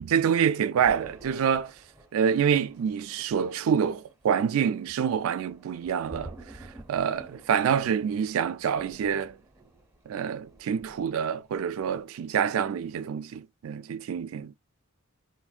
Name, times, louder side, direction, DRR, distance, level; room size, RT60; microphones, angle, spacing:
voice 1, 0.1-1.7 2.1-6.3 6.9-9.3 10.1-14.5, right 7 dB, 70° right, 0.3 m, -26 dB
Thunder, 0.8-11.4 11.7-12.0, right 2 dB, 10° right, 0.7 m, -50 dB
3.3 x 2.1 x 2.4 m
head